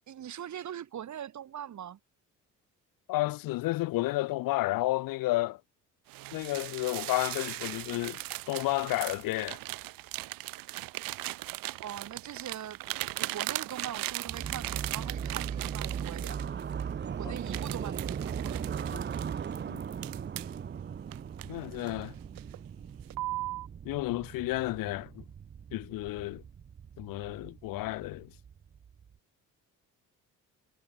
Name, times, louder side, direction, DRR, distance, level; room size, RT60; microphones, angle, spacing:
voice 1, 0.1-2.0 11.8-16.6 17.2-18.6, right 10 dB, 60° right, 3.6 m, -42 dB
voice 2, 3.1-5.6 6.3-8.2 8.5-9.6 17.2-17.3 18.9-19.0 19.7-19.8 21.4-22.1 23.8-25.2 25.7-26.4 27.0-28.3, left 18 dB, 85° left, 0.9 m, -31 dB
sound 1, 6.1-16.9 17.4-20.6 21.1-22.0 22.4-22.7 23.1-23.7, right 18 dB, 90° right, 1.7 m, -38 dB
sound 2, 14.3-29.2, right 7 dB, 30° right, 0.8 m, -38 dB
cardioid pair, 100°, 33 cm